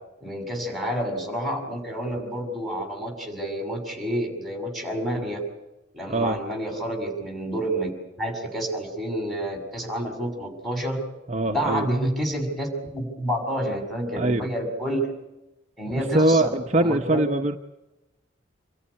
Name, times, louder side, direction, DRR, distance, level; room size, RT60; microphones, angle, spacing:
voice 1, 0.2-5.4 5.9-7.9 8.2-11.0 11.4-15.1 15.8-17.2, right 1 dB, ahead, 2 dB, 6.2 m, -29 dB
voice 2, 6.1-6.4 11.3-11.9 14.2-14.5 16.1-17.6, right 2 dB, 35° right, 4 dB, 0.8 m, -22 dB
27.0 x 14.5 x 9.7 m, 0.98 s
head